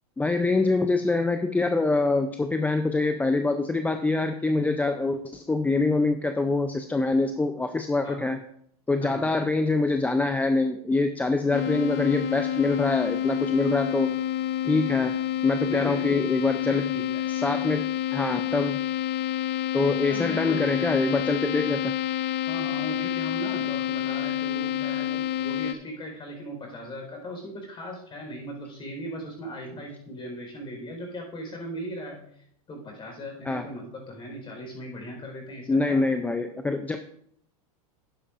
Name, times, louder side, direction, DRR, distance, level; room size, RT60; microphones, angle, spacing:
voice 1, 0.2-8.4 8.9-14.2 14.6-15.2 15.4-16.9 17.3-18.8 19.7-21.9 33.5-33.7 35.7-37.0, left 3 dB, 10° left, 7 dB, 0.5 m, -25 dB
sound 1, 11.5-25.7, left 12 dB, 55° left, 1.0 m, -28 dB
voice 2, 15.6-16.2 16.7-17.2 20.1-20.6 22.5-32.2 32.7-36.0, equal, 25° left, 1 dB, 4.4 m, -38 dB
11.5 x 10.0 x 2.5 m, 0.70 s
hypercardioid pair, 115°, 19 cm